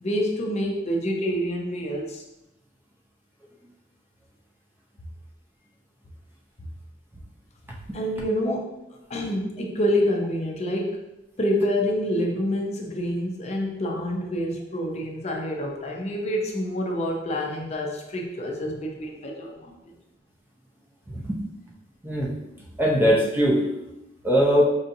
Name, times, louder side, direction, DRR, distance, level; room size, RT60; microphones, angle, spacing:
voice 1, 0.0-2.2 7.9-8.7 9.1-11.0 11.4-19.9, equal, 35° left, 0 dB, 0.5 m, -27 dB
voice 2, 21.1-21.4 22.0-22.3 22.8-23.6 24.2-24.6, equal, 10° right, -3 dB, 0.6 m, -20 dB
5.4 x 2.6 x 2.6 m, 0.93 s
head